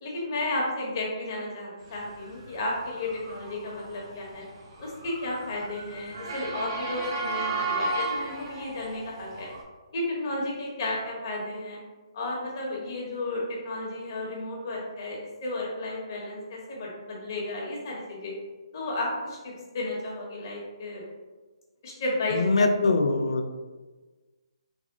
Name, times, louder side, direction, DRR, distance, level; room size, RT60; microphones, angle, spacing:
voice 1, 0.0-4.4 4.8-9.5 9.9-11.8 12.1-18.3 18.7-21.0 21.8-22.6, left 2 dB, 40° left, -3 dB, 1.1 m, -33 dB
Motor vehicle (road) / Siren, 2.3-9.6, right 2 dB, 40° right, 0.7 m, -34 dB
voice 2, 22.3-23.5, left 3 dB, 85° left, 6 dB, 0.4 m, -23 dB
3.5 x 2.0 x 3.6 m, 1.3 s
hypercardioid pair, 165°, 3 cm